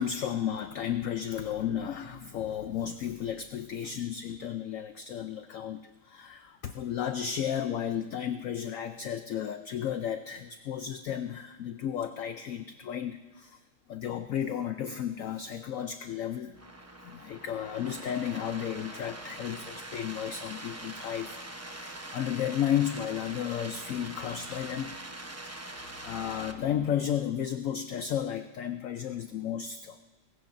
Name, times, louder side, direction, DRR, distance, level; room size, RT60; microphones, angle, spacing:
voice 1, 0.0-13.6 13.9-16.5 17.0-25.0 25.4-25.6 26.0-30.0, left 9 dB, 65° left, 8 dB, 0.8 m, -33 dB
sound 1, 16.5-26.5, right 1 dB, 15° right, 0.5 m, -43 dB
21.5 x 18.0 x 2.6 m, 1.3 s
omnidirectional pair, 1.9 m